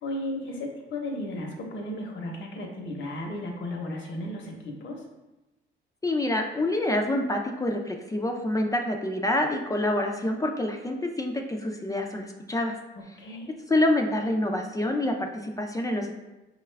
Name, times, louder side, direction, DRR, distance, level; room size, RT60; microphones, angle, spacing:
voice 1, 0.0-5.0 13.0-13.5, left 1 dB, 70° left, 1 dB, 0.8 m, -35 dB
voice 2, 6.0-12.7 13.7-16.1, left 1 dB, 15° left, 2 dB, 0.4 m, -27 dB
4.8 x 2.3 x 3.2 m, 1.0 s
cardioid pair, 90°, 20 cm